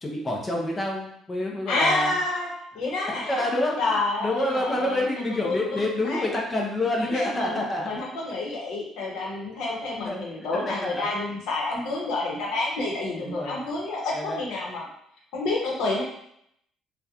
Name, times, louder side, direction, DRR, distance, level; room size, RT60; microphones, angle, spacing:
voice 1, 0.0-2.1 3.1-8.0 10.0-10.2 10.8-11.1 13.2-13.7 14.1-14.4, left 1 dB, 15° left, -1 dB, 0.4 m, -28 dB
voice 2, 1.7-6.3 6.8-14.9 15.3-16.0, left 2 dB, 70° left, -2 dB, 0.7 m, -29 dB
2.8 x 2.1 x 2.3 m, 0.72 s
cardioid pair, 180°, 0 cm